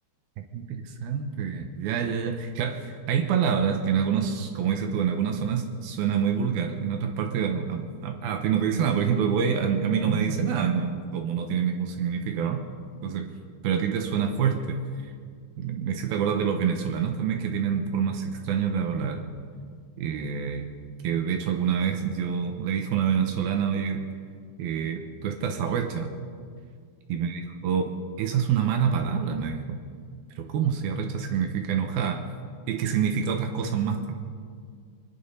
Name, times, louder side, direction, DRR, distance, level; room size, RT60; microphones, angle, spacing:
voice 1, 0.4-12.6 13.0-13.3 13.6-14.8 15.6-19.3 20.0-20.7 21.0-24.0 24.6-26.1 27.1-27.9 28.2-29.8 30.4-32.2 32.7-34.1, right 7 dB, 75° right, 4 dB, 2.3 m, -26 dB
24.0 x 11.0 x 5.4 m, 2.1 s
omnidirectional pair, 5.3 m